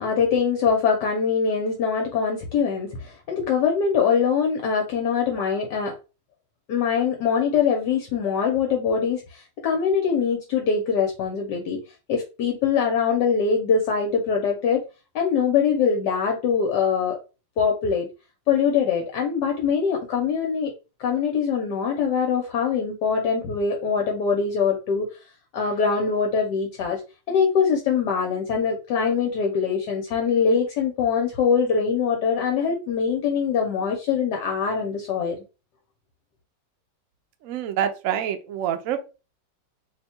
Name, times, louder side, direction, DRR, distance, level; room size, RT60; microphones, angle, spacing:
voice 1, 0.0-5.9 6.7-11.8 12.1-14.8 15.1-17.2 17.6-18.1 18.5-20.7 21.0-25.1 25.5-27.0 27.3-35.4, left 6 dB, 70° left, 2 dB, 1.2 m, -23 dB
voice 2, 37.4-39.0, right 10 dB, 90° right, 7 dB, 0.7 m, -26 dB
3.0 x 2.2 x 4.2 m, 0.31 s
omnidirectional pair, 2.0 m